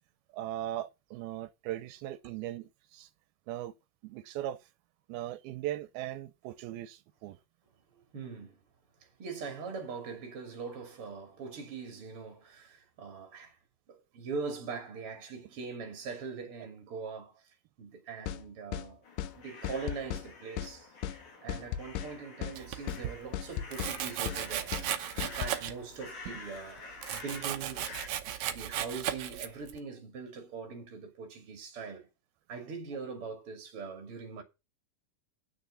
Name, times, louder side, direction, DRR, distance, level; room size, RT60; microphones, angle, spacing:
voice 1, 0.3-3.1 3.5-3.7 4.0-4.6 5.1-7.4, right 13 dB, 85° right, 2.6 m, -38 dB
voice 2, 8.1-8.6 9.2-13.6 13.9-17.4 17.8-19.0 19.3-20.9 21.4-28.0 28.5-32.1 32.5-34.4, right 5 dB, 40° right, 3.2 m, -42 dB
sound 1, 18.3-18.4 18.7-18.9 19.2-19.3 19.6-20.3 20.6-20.7 21.0-21.2 21.5-22.1 22.4-22.6 22.9-23.0 23.3-24.0 24.3-24.4 24.7-24.9 25.2-25.6, left 11 dB, 75° left, 2.1 m, -36 dB
sound 2, 19.0-28.1, left 3 dB, 55° left, 4.3 m, -49 dB
Domestic sounds home sounds, 22.5-23.2 23.7-26.0 26.3-29.8, right 11 dB, 70° right, 1.9 m, -36 dB
9.6 x 6.5 x 7.1 m
omnidirectional pair, 4.3 m